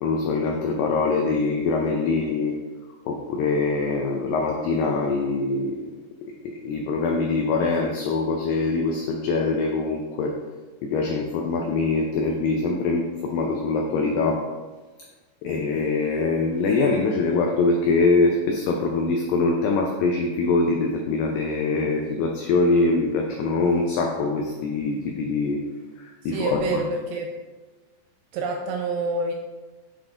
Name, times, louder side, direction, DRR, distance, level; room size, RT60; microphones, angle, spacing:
voice 1, 0.0-2.6 3.1-5.9 6.4-10.3 10.8-14.4 15.4-25.6 26.3-26.8, left 3 dB, 85° left, 1 dB, 2.0 m, -23 dB
voice 2, 26.2-27.3 28.3-29.3, right 2 dB, 85° right, 3 dB, 2.2 m, -27 dB
8.0 x 3.7 x 3.8 m, 1.2 s
omnidirectional pair, 4.8 m